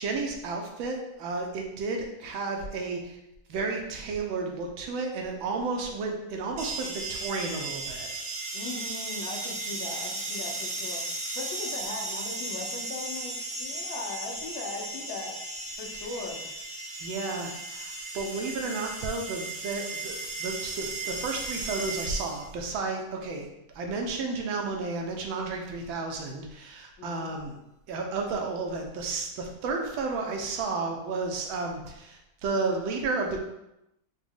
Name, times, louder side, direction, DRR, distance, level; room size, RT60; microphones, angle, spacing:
voice 1, 0.0-3.2 3.5-8.1 17.0-23.5 23.7-27.6 27.9-33.4, right 3 dB, 85° right, 1 dB, 1.4 m, -32 dB
sound 1, 6.6-22.5, right 2 dB, 50° right, 0.9 m, -36 dB
voice 2, 8.5-11.0 11.3-15.4 15.8-16.4 27.0-27.3, left 3 dB, 80° left, 0 dB, 1.5 m, -39 dB
4.9 x 2.1 x 3.5 m, 0.86 s
omnidirectional pair, 2.1 m